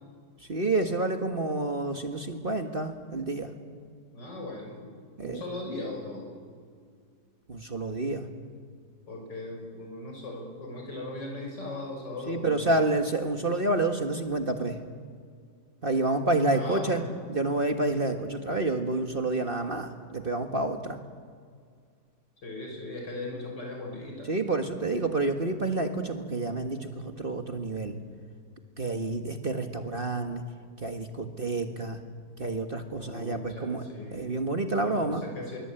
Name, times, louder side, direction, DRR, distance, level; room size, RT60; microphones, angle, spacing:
voice 1, 0.4-3.5 5.2-5.4 7.5-8.3 12.3-14.8 15.8-17.0 17.3-21.0 24.3-27.9 28.8-30.4 30.8-32.0 32.4-35.3, right 2 dB, 30° right, 5 dB, 1.6 m, -29 dB
voice 2, 4.1-4.8 5.2-6.2 9.1-12.7 16.5-17.1 22.4-24.3 33.0-34.3 34.8-35.6, left 2 dB, 75° left, 1 dB, 6.8 m, -38 dB
24.0 x 23.5 x 9.0 m, 2.1 s
omnidirectional pair, 1.9 m